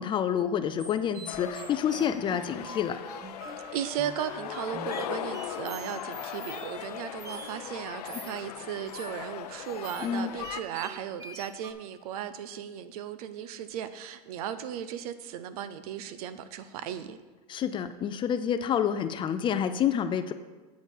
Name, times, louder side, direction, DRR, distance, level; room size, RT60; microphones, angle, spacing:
voice 1, 0.0-3.0 10.0-10.3 17.5-20.3, left 8 dB, 25° left, 11 dB, 0.4 m, -28 dB
sound 1, 0.6-7.7 8.1-8.4 8.9-11.7, right 3 dB, 15° right, 0.7 m, -46 dB
sound 2, 1.3-10.6, left 11 dB, 80° left, 0.6 m, -39 dB
voice 2, 3.7-17.2, right 10 dB, 70° right, 12 dB, 0.7 m, -36 dB
8.1 x 6.5 x 4.9 m, 1.2 s
supercardioid pair, 125°, 20 cm